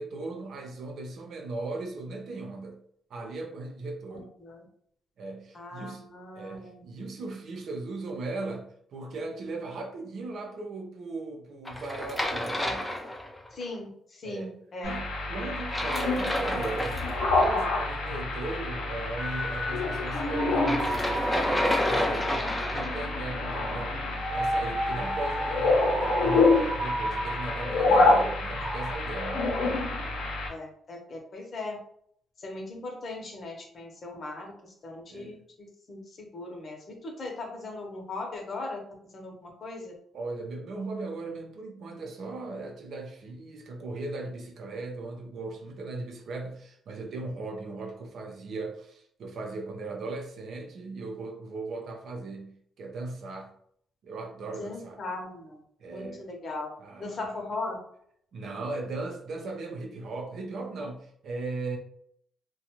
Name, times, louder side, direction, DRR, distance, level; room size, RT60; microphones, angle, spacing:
voice 1, 0.0-2.8 3.1-4.3 5.2-6.0 6.3-8.6 8.9-12.9 14.2-24.0 24.3-29.4 35.1-35.4 40.1-52.5 52.8-53.5 54.0-55.0 55.8-56.3 56.8-57.4 58.3-61.8, right 3 dB, 65° right, 2 dB, 0.6 m, -38 dB
voice 2, 5.5-6.8 13.5-13.9 14.2-15.0 27.9-28.2 29.6-29.8 30.5-31.8 32.4-34.5 34.8-36.8 37.0-38.8 39.1-39.9 54.6-55.6 55.9-56.7 57.0-57.8, left 2 dB, 50° left, 1 dB, 0.8 m, -38 dB
sound 1, 11.7-13.6 15.5-17.5 20.5-23.2, left 1 dB, 10° left, 0.5 m, -30 dB
sound 2, 14.8-30.5, left 2 dB, 85° left, 0.7 m, -27 dB
sound 3, 19.2-23.0 24.0-29.0, right 1 dB, 20° right, 0.8 m, -34 dB
2.5 x 2.2 x 2.9 m, 0.66 s
cardioid pair, 90°, 0 cm